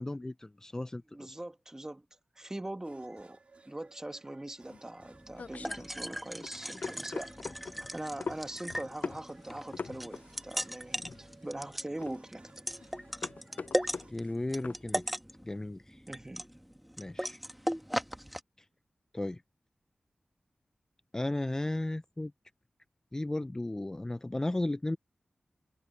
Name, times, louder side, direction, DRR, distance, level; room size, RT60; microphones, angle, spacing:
voice 1, 0.0-1.0 14.1-15.0 15.4-16.0 17.0-17.4 19.1-19.4 21.1-22.3 23.1-25.0, left 1 dB, 20° left, 0.5 m, -34 dB
voice 2, 1.1-2.0 2.3-3.4 3.6-7.3 7.6-12.5 16.1-16.5, right 1 dB, 20° right, 1.4 m, -42 dB
sound 1, 2.8-14.1, right 3 dB, 50° right, 2.8 m, -60 dB
sound 2, 4.7-15.1, left 4 dB, 70° left, 0.5 m, -43 dB
sound 3, 5.1-18.4, equal, ahead, 1.3 m, -38 dB
wide cardioid pair, 80°, 3 cm